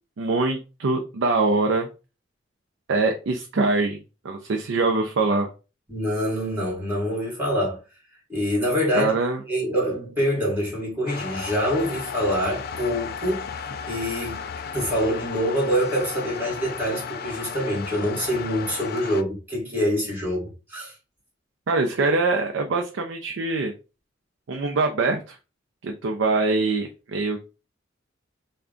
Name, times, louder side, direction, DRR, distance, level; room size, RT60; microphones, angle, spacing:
voice 1, 0.2-1.9 2.9-4.0 4.2-5.5 8.9-9.4 21.7-23.7 24.5-25.4 25.8-27.4, right 3 dB, 70° right, 0.5 m, -23 dB
voice 2, 5.9-7.8 8.3-9.1 9.5-14.4 14.7-20.9, equal, 10° right, 1.7 m, -25 dB
sound 1, 11.1-19.2, left 6 dB, 55° left, 0.3 m, -34 dB
3.5 x 2.2 x 3.7 m
head